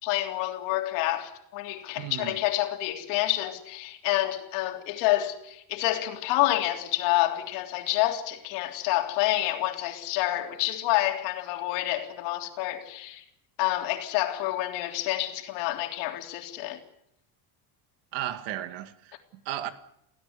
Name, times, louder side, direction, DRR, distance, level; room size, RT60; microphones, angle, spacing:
voice 1, 0.0-13.2 13.6-16.8, left 16 dB, 90° left, 3.5 m, -28 dB
voice 2, 2.0-2.4 18.1-19.7, right 12 dB, 75° right, 2.2 m, -35 dB
29.0 x 16.5 x 8.1 m
cardioid pair, 165°, 42 cm